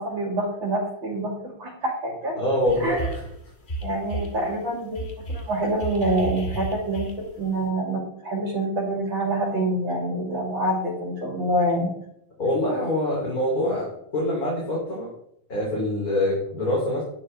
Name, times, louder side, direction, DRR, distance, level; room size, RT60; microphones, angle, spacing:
voice 1, 0.0-2.3 2.8-3.1 3.8-11.9, right 1 dB, 80° right, -2 dB, 3.7 m, -26 dB
voice 2, 2.4-3.3 12.4-13.9 14.1-15.1 15.5-17.0, left 1 dB, 45° left, -4 dB, 3.5 m, -25 dB
sound 1, 2.7-3.3 3.6-4.4 5.0-7.5, right 1 dB, 30° left, 1.4 m, -32 dB
11.0 x 11.0 x 3.3 m, 0.74 s
omnidirectional pair, 2.1 m